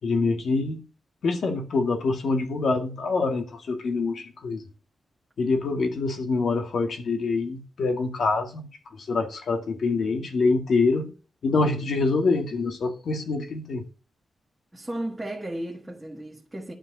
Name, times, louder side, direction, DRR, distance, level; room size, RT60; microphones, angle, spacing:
voice 1, 0.0-0.8 1.2-4.7 5.4-11.2 11.4-13.9, left 3 dB, 60° left, 2.1 m, -25 dB
voice 2, 14.7-16.7, right 1 dB, 10° right, 1.6 m, -34 dB
11.5 x 5.2 x 7.6 m
wide cardioid pair, 165°, 0 cm